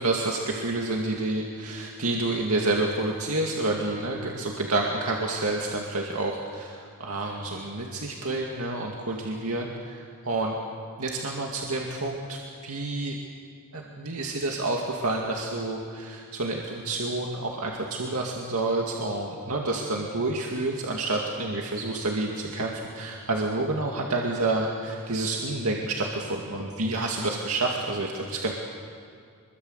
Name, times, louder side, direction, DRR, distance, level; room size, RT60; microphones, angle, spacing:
voice 1, 0.0-10.5 11.0-13.2 13.7-28.5, right 2 dB, 75° right, -1 dB, 2.3 m, -29 dB
25.5 x 23.0 x 8.1 m, 2.3 s
head